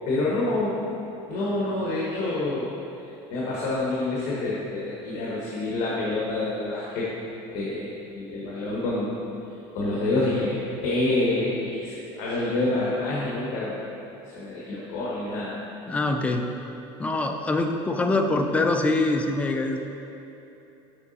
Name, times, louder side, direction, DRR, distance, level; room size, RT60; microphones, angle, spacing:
voice 1, 0.1-0.8 1.3-2.7 3.3-7.1 7.5-7.9 8.2-9.2 9.7-13.8 14.3-15.5, left 2 dB, 65° left, -6 dB, 1.2 m, -27 dB
voice 2, 15.9-16.5 17.0-19.8, left 2 dB, 10° left, 4 dB, 0.3 m, -24 dB
6.9 x 4.8 x 4.0 m, 3.0 s
cardioid pair, 165°, 12 cm